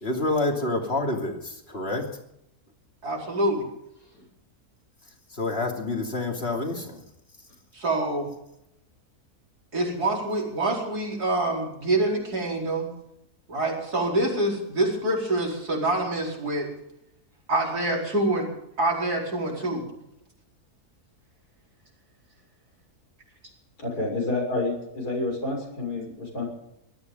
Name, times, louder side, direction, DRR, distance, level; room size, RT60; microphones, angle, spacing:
voice 1, 0.0-2.1 5.3-7.0, left 2 dB, 40° left, 2 dB, 3.1 m, -28 dB
voice 2, 3.0-3.7 7.7-8.3 9.7-12.9 13.5-16.7 17.5-18.5 18.8-19.8, right 2 dB, 80° right, -1 dB, 5.2 m, -26 dB
voice 3, 23.8-26.4, left 2 dB, 85° left, 0 dB, 7.4 m, -29 dB
20.0 x 13.0 x 5.5 m, 0.81 s
omnidirectional pair, 1.6 m